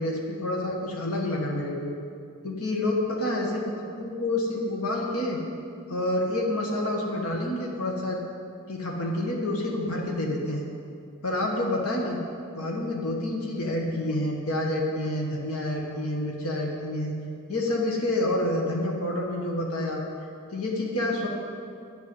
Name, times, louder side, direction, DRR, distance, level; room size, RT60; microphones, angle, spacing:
voice 1, 0.0-1.9 2.4-3.6 4.0-5.4 5.9-8.2 8.7-10.7 11.2-12.2 12.5-17.1 17.5-20.0 20.5-21.3, left 1 dB, 85° left, -1 dB, 1.6 m, -28 dB
10.5 x 6.9 x 9.4 m, 2.4 s
head